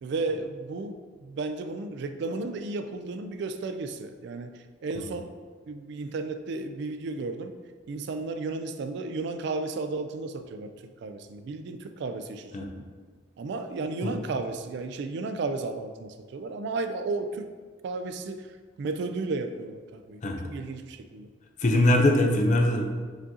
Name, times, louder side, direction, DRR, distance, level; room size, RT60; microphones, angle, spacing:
voice 1, 0.0-5.3 5.7-7.5 7.9-10.7 11.0-12.9 13.4-17.5 17.8-18.5 18.8-21.3, right 3 dB, 60° right, 8 dB, 0.3 m, -33 dB
voice 2, 21.6-22.8, left 1 dB, 40° left, 3 dB, 0.5 m, -21 dB
5.0 x 3.7 x 2.7 m, 1.5 s
head